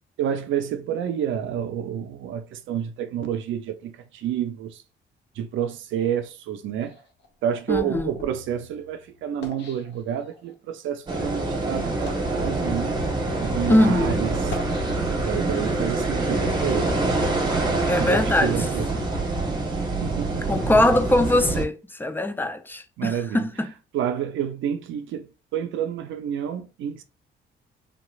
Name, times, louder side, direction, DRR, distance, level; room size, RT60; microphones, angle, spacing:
voice 1, 0.2-4.8 5.4-6.9 7.4-13.0 13.4-14.3 15.3-17.0 18.0-18.9 20.0-20.6 23.0-23.5 23.9-27.0, right 9 dB, 80° right, 0.5 m, -29 dB
sound 1, 6.8-10.5 11.2-11.4 11.9-12.4 13.2-13.4 14.3-15.4 15.9-18.4, left 3 dB, 60° left, 1.0 m, -42 dB
voice 2, 7.7-8.2 13.7-14.3 17.9-18.7 20.5-23.7, left 1 dB, 10° left, 0.5 m, -22 dB
sound 2, 11.1-21.6, right 2 dB, 20° right, 1.1 m, -25 dB
3.5 x 3.0 x 2.4 m
cardioid pair, 90°, 20 cm